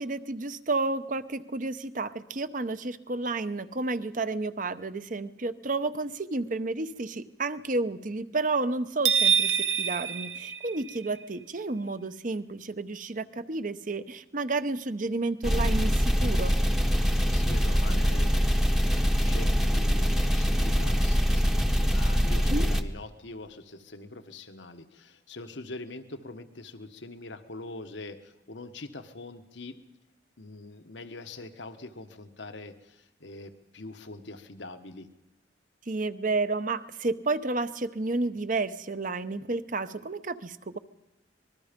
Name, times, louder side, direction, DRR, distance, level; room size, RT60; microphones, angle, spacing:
voice 1, 0.0-16.5 22.5-22.7 35.9-40.8, right 3 dB, 45° right, 12 dB, 0.8 m, -31 dB
sound 1, 9.0-11.2, right 7 dB, 80° right, 1.0 m, -26 dB
sound 2, 15.4-22.8, equal, ahead, 0.9 m, -24 dB
voice 2, 17.0-18.8 19.2-29.8 30.4-35.1, left 2 dB, 85° left, 9 dB, 1.3 m, -43 dB
25.0 x 20.5 x 5.2 m, 0.93 s
head